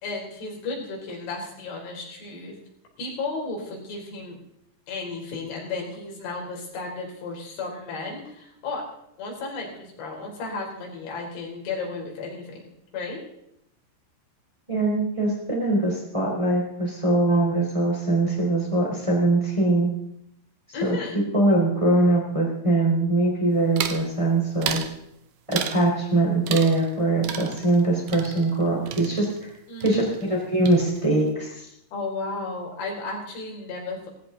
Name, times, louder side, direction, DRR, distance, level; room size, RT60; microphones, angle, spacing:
voice 1, 0.0-2.5 3.0-4.4 4.9-8.9 9.2-13.2 20.7-21.2 29.7-30.1 31.9-34.1, left 3 dB, 70° left, 0 dB, 5.9 m, -34 dB
voice 2, 14.7-19.9 20.8-24.8 25.5-29.5 29.8-31.5, right 2 dB, 5° right, -2 dB, 3.4 m, -22 dB
sound 1, 23.8-24.1 24.6-25.0 25.5-25.9 26.5-27.0 27.2-29.6 29.8-30.4 30.7-31.2, right 9 dB, 75° right, 2.0 m, -33 dB
18.5 x 16.0 x 3.9 m, 0.78 s
omnidirectional pair, 5.1 m